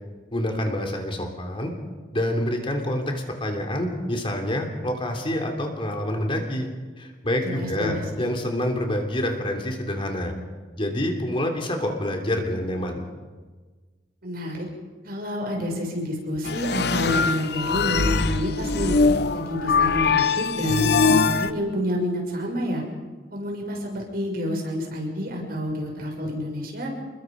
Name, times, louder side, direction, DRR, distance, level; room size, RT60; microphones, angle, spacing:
voice 1, 0.3-1.7 2.1-6.7 7.0-10.3 10.8-13.0, left 1 dB, 30° left, 3 dB, 3.3 m, -27 dB
voice 2, 7.4-8.0 14.2-14.7 15.0-19.0 19.3-22.8 23.3-26.9, equal, 55° right, 0 dB, 6.7 m, -28 dB
sound 1, 16.4-21.5, left 4 dB, 65° left, 0.9 m, -22 dB
28.5 x 22.0 x 5.3 m, 1.3 s
head